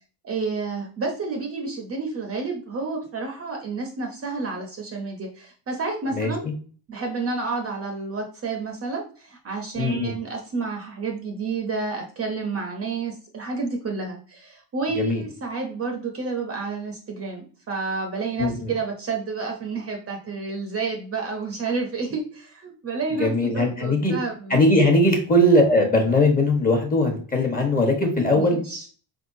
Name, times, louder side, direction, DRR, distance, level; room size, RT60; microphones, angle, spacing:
voice 1, 0.2-6.5 6.9-25.0 28.3-28.9, right 4 dB, 30° right, 2 dB, 0.7 m, -30 dB
voice 2, 9.8-10.1 15.0-15.2 18.4-18.7 23.2-24.1 24.5-28.6, left 1 dB, 20° left, 2 dB, 1.1 m, -20 dB
4.6 x 3.6 x 2.6 m, 0.41 s
cardioid pair, 135°, 45 cm